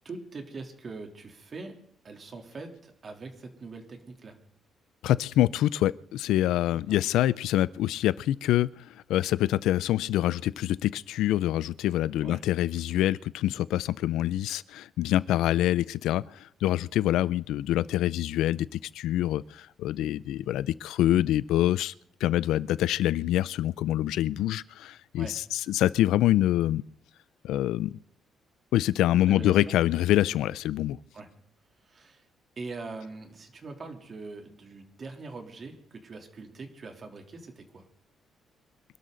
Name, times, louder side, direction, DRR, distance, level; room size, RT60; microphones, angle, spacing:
voice 1, 0.0-1.8 2.0-4.4 6.7-7.0 12.2-12.4 25.2-25.4 29.1-29.7 31.1-31.3 31.8-32.2 32.6-37.9, right 3 dB, 45° right, 3.3 m, -42 dB
voice 2, 5.0-21.9 22.2-26.8 27.4-28.0 28.7-31.0, left 13 dB, 85° left, 0.5 m, -26 dB
25.5 x 12.5 x 4.0 m
cardioid pair, 90°, 0 cm